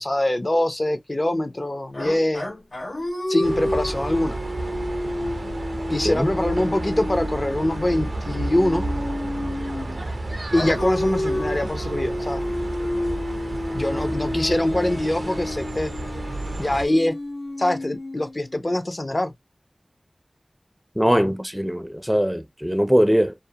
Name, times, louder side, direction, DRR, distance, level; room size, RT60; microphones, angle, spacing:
voice 1, 0.0-2.5 3.3-4.4 5.9-8.9 10.5-12.4 13.7-15.9 16.6-17.1 17.6-19.3, left 1 dB, 45° left, 0.6 m, -23 dB
sound 1, 1.9-10.0 10.5-18.6, left 1 dB, 85° left, 0.8 m, -30 dB
sound 2, 3.4-16.9, right 2 dB, 80° right, 0.5 m, -31 dB
voice 2, 21.0-23.3, equal, 10° right, 0.4 m, -21 dB
2.3 x 2.1 x 2.8 m
wide cardioid pair, 40°, 0 cm